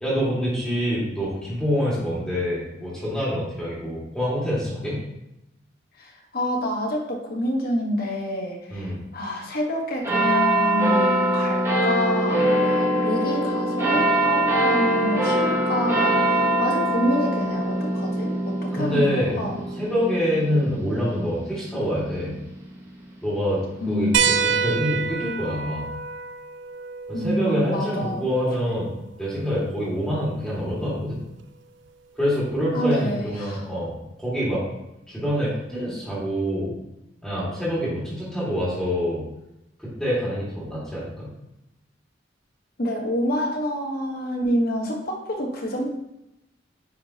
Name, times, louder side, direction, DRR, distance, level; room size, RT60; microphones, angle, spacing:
voice 1, 0.0-5.0 8.7-9.0 18.7-19.4 19.7-22.4 23.2-24.1 24.4-25.9 27.1-28.9 29.2-31.2 32.2-34.6 35.1-36.7 37.2-39.3 39.8-41.3, equal, 5° left, -8 dB, 2.0 m, -26 dB
voice 2, 6.0-19.6 23.8-24.6 27.1-28.2 28.7-28.8 32.7-33.7 42.8-45.9, equal, 55° left, 0 dB, 1.3 m, -28 dB
sound 1, 10.0-22.9 23.6-23.7, right 1 dB, 15° right, 1.1 m, -23 dB
sound 2, 24.1-29.2 30.8-30.9 32.5-32.6, right 6 dB, 75° right, 0.4 m, -28 dB
9.4 x 3.8 x 2.9 m, 0.89 s
head